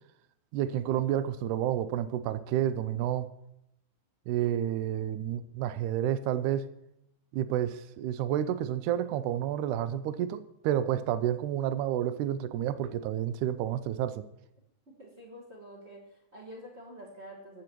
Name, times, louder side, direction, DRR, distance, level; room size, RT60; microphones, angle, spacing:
voice 1, 0.5-3.3 4.3-6.7 7.3-14.3, right 11 dB, 80° right, 1.9 m, -30 dB
voice 2, 14.9-17.6, equal, 35° right, 1.1 m, -47 dB
20.0 x 7.8 x 3.0 m
omnidirectional pair, 3.9 m